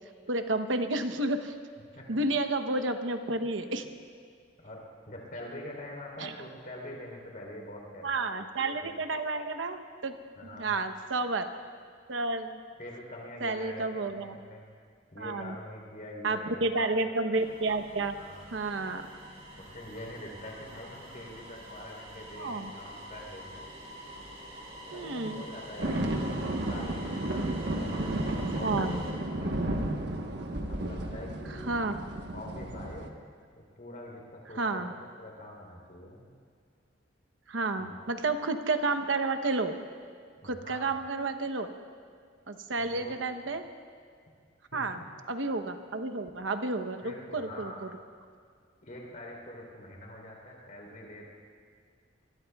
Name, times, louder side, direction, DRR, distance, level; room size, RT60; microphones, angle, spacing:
voice 1, 0.3-1.5 2.1-3.9 6.2-6.3 8.0-10.2 10.6-11.5 12.1-12.6 13.4-14.4 15.2-15.5 16.2-18.1 18.5-19.1 22.4-22.7 24.9-25.4 28.6-29.0 31.7-32.0 34.6-34.9 37.5-39.8 40.4-41.7 42.5-43.6 44.7-45.0 45.3-47.7, right 3 dB, 85° right, 8 dB, 0.9 m, -31 dB
voice 2, 5.1-8.3 8.8-8.9 10.4-10.8 12.8-14.6 15.1-17.0 18.2-18.4 19.7-23.6 24.9-26.3 26.7-29.0 29.3-30.0 30.6-31.6 32.3-33.2 33.6-36.3 37.8-37.9 40.4-40.9 42.8-43.1 44.7-45.1 47.0-47.8 48.8-51.3, left 1 dB, 50° left, -1 dB, 3.5 m, -44 dB
sound 1, 17.3-29.1, equal, 35° right, 4.0 m, -46 dB
sound 2, 25.8-33.1, right 1 dB, 65° right, 1.2 m, -33 dB
25.0 x 21.5 x 2.3 m, 2.1 s
head